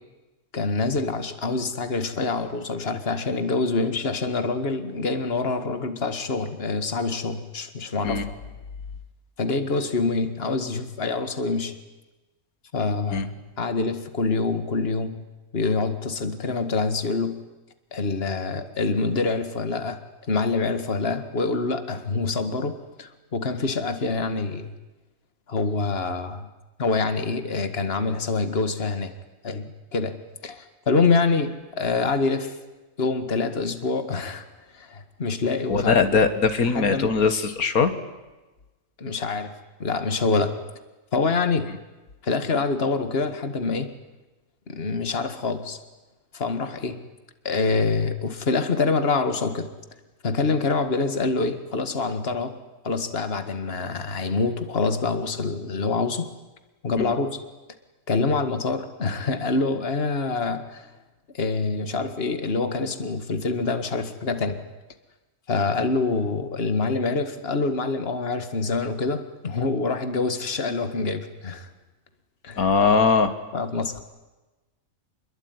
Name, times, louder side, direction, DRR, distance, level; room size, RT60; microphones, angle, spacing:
voice 1, 0.5-8.4 9.4-11.7 12.7-15.2 15.5-17.4 17.9-20.0 20.3-24.7 25.5-26.5 26.8-29.1 29.4-30.2 30.4-32.6 33.0-34.4 34.7-36.0 36.6-37.2 39.0-39.5 39.8-40.6 41.1-41.7 42.2-43.9 44.7-45.8 46.3-47.0 47.4-49.7 50.2-52.6 52.8-56.3 56.8-57.4 58.1-60.9 61.3-64.6 65.5-71.7 72.4-72.7 73.5-74.0, left 3 dB, 45° left, 9 dB, 2.1 m, -26 dB
voice 2, 35.7-37.9 57.0-57.1 72.6-73.3, left 5 dB, 90° left, 9 dB, 2.1 m, -20 dB
27.0 x 22.0 x 9.7 m, 1.1 s
omnidirectional pair, 1.5 m